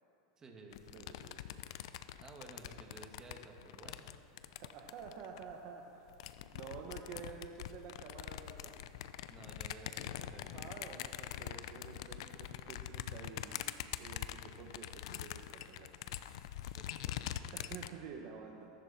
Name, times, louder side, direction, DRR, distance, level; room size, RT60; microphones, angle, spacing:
voice 1, 0.4-1.0 2.2-4.0 9.3-10.5 16.7-17.5, right 3 dB, 20° right, 0 dB, 2.3 m, -54 dB
sound 1, 0.7-5.5 6.1-17.9, left 12 dB, 70° left, 0.6 m, -44 dB
voice 2, 0.9-1.7 4.6-6.1 6.5-8.7 10.5-13.7 14.0-16.0 17.5-18.7, right 6 dB, 50° right, 1 dB, 1.4 m, -50 dB
21.5 x 12.0 x 4.5 m, 2.8 s
supercardioid pair, 135°, 3 cm